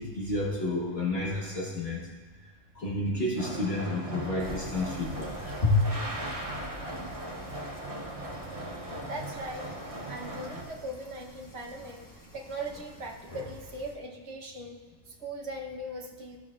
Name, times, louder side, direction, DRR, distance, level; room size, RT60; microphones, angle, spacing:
voice 1, 0.0-2.1 2.7-5.8 13.3-13.4, left 2 dB, 50° left, -5 dB, 1.6 m, -30 dB
sound 1, 3.4-10.6, right 1 dB, 30° right, 0.9 m, -38 dB
sound 2, 4.4-13.9, left 1 dB, 15° left, 1.0 m, -48 dB
voice 2, 9.0-9.7 10.1-14.8 15.1-16.4, right 1 dB, 55° right, 0 dB, 1.2 m, -39 dB
14.0 x 6.9 x 2.4 m, 1.4 s
omnidirectional pair, 1.4 m